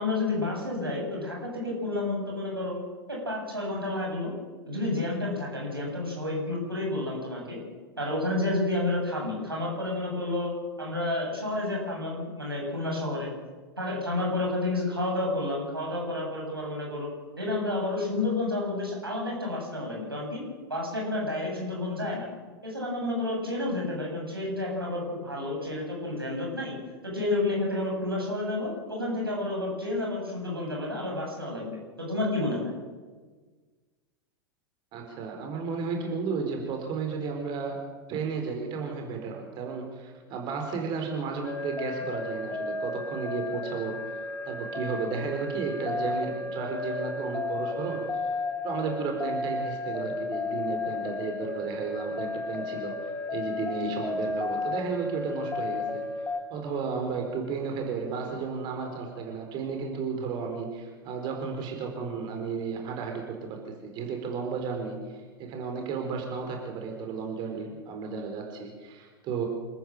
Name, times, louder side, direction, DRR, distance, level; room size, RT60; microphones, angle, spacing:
voice 1, 0.0-2.8 3.1-4.3 4.7-7.6 8.0-10.5 10.8-13.3 13.8-17.1 17.4-20.4 20.7-22.3 22.6-26.7 27.0-32.7, left 2 dB, 85° right, -2 dB, 7.6 m, -30 dB
voice 2, 34.9-37.8 38.1-48.3 48.6-69.4, right 5 dB, 40° right, 2 dB, 4.4 m, -33 dB
sound 1, 41.4-56.4, left 3 dB, 15° left, 1.8 m, -33 dB
27.5 x 14.0 x 7.7 m, 1.4 s
figure-of-eight pair, 90°, 12 cm